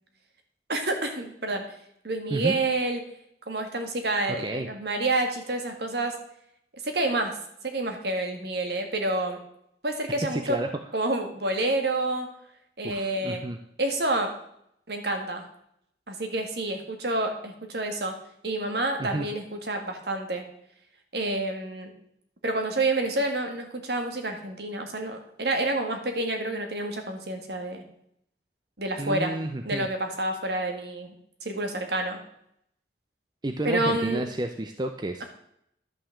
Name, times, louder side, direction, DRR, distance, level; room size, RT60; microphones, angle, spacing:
voice 1, 0.7-1.7 2.0-3.0 3.5-6.1 6.8-7.4 7.6-9.4 9.8-10.6 10.9-12.3 12.8-13.4 13.8-14.3 14.9-15.4 16.1-18.1 18.4-20.4 21.1-21.9 22.4-27.8 28.8-29.3 29.6-31.1 31.5-32.2 33.6-34.2, right 2 dB, 60° right, 4 dB, 1.9 m, -28 dB
voice 2, 4.3-4.7 10.2-10.7 12.8-13.6 19.0-19.3 29.0-29.9 33.4-35.2, right 1 dB, 25° right, 6 dB, 0.6 m, -31 dB
11.5 x 5.9 x 7.1 m, 0.73 s
head